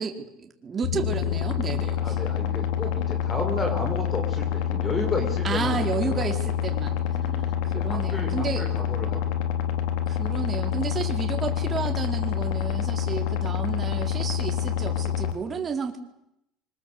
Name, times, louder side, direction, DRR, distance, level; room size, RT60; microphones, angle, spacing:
voice 1, 0.0-2.2 5.4-8.7 10.1-16.0, right 5 dB, 30° right, 4 dB, 4.5 m, -32 dB
sound 1, 0.8-15.3, left 9 dB, 80° left, 3.8 m, -27 dB
voice 2, 2.0-6.3 7.6-9.3, left 2 dB, 20° left, 6 dB, 5.8 m, -32 dB
26.5 x 25.5 x 8.1 m, 0.81 s
cardioid pair, 125°, 0 cm